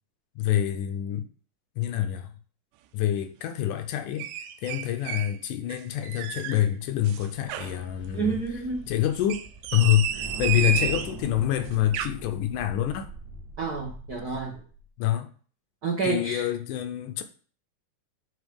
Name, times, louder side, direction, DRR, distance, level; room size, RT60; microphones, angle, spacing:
voice 1, 0.4-1.3 1.8-2.3 2.9-4.3 4.6-8.4 8.9-9.5 9.7-13.1 14.3-14.4 15.0-15.3 16.0-17.2, left 12 dB, 80° left, 2.0 m, -26 dB
sound 1, 4.2-5.3 5.7-6.6 7.0-7.8 9.2-11.2 11.7-12.1, right 10 dB, 90° right, 2.3 m, -31 dB
sound 2, 6.5-14.9, right 2 dB, 45° right, 1.3 m, -42 dB
voice 2, 8.1-8.8 13.6-14.6 15.8-16.5, right 4 dB, 60° right, 0.9 m, -29 dB
8.2 x 4.0 x 5.2 m
omnidirectional pair, 3.8 m